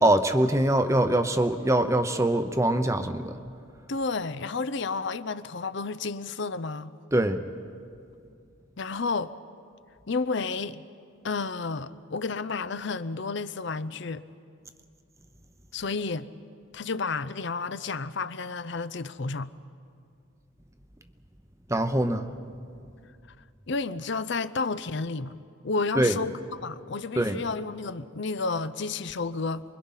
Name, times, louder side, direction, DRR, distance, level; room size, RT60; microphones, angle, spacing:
voice 1, 0.0-3.3 7.1-7.4 21.7-22.3 26.0-26.1 27.2-27.4, right 1 dB, 15° right, 0.8 m, -23 dB
voice 2, 3.9-6.9 8.8-9.3 10.1-10.8 11.2-14.2 15.7-16.3 16.7-19.5 23.7-25.4 25.6-29.6, left 4 dB, 55° left, 0.6 m, -31 dB
28.5 x 22.5 x 5.7 m
head